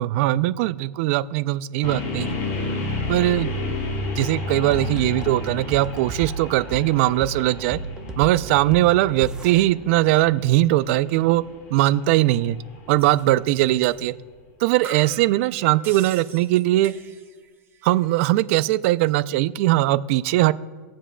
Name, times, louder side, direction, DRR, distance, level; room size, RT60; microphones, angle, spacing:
voice 1, 0.0-2.3 3.1-3.5 4.2-7.8 8.2-11.4 11.7-12.6 12.9-14.1 14.6-16.9 17.8-20.5, right 16 dB, 55° right, 15 dB, 0.4 m, -20 dB
sound 1, 1.8-13.8, left 2 dB, 45° left, 2.9 m, -32 dB
sound 2, 4.7-9.6, right 2 dB, 10° right, 0.8 m, -34 dB
sound 3, 13.0-13.2 13.8-14.0 14.3-14.4 14.8-17.5 17.7-18.3, right 6 dB, 30° right, 2.0 m, -42 dB
20.0 x 7.4 x 2.2 m, 1.4 s
supercardioid pair, 135°, 8 cm